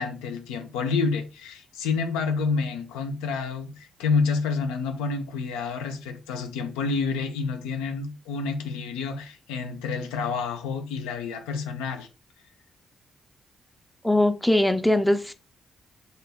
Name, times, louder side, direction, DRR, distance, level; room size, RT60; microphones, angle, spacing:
voice 1, 0.0-12.1, left 4 dB, 90° left, 0.4 m, -29 dB
voice 2, 14.0-15.3, left 1 dB, 5° left, 0.4 m, -21 dB
2.8 x 2.3 x 3.4 m
supercardioid pair, 45°, 0 cm